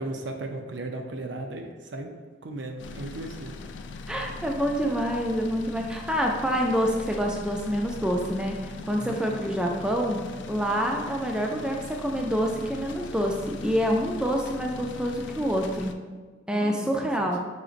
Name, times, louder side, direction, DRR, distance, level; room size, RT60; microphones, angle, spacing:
voice 1, 0.0-2.1 2.4-3.6 9.0-9.2 16.5-17.3, right 2 dB, 75° right, 4 dB, 0.6 m, -36 dB
sound 1, 2.8-15.9, left 3 dB, 80° left, 0.3 m, -41 dB
voice 2, 4.1-16.0 16.5-17.4, equal, 5° right, 1 dB, 0.3 m, -27 dB
5.0 x 3.9 x 2.5 m, 1.4 s
head